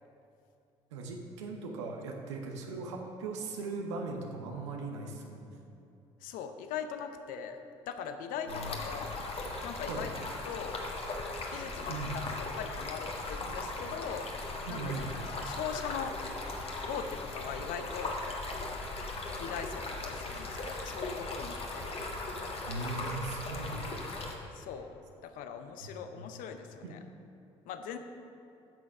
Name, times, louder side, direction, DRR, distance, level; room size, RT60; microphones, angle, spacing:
voice 1, 0.9-5.6 8.5-8.8 9.8-10.1 11.9-12.2 14.7-15.2 22.6-24.1 25.8-26.2 26.8-26.9, right 3 dB, 85° right, 2 dB, 0.9 m, -39 dB
voice 2, 6.2-9.2 9.6-10.1 10.5-10.8 11.5-14.3 14.7-15.0 15.4-16.2 16.9-18.2 19.4-21.8 24.5-24.9 25.2-27.0 27.7-28.0, left 7 dB, 70° left, 8 dB, 0.8 m, -40 dB
Stream, 8.5-24.4, left 2 dB, 40° left, 1.6 m, -38 dB
10.5 x 6.4 x 5.5 m, 2.8 s
hypercardioid pair, 55°, 15 cm